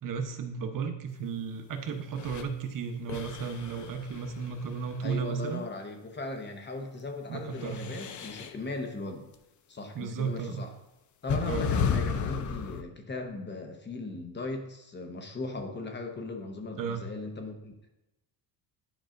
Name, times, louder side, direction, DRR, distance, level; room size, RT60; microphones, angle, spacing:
voice 1, 0.0-5.6 7.3-7.9 9.9-10.6 11.5-11.7 16.8-17.1, right 6 dB, 50° right, 5 dB, 1.0 m, -34 dB
sound 1, 2.1-2.4 3.1-5.1 7.5-8.6 10.1-10.2 11.3-12.8, left 6 dB, 45° left, 0.7 m, -33 dB
voice 2, 5.0-9.3 9.7-10.7 11.2-17.9, left 2 dB, 25° left, 4 dB, 1.0 m, -38 dB
10.5 x 5.6 x 2.6 m, 0.93 s
cardioid pair, 120°, 41 cm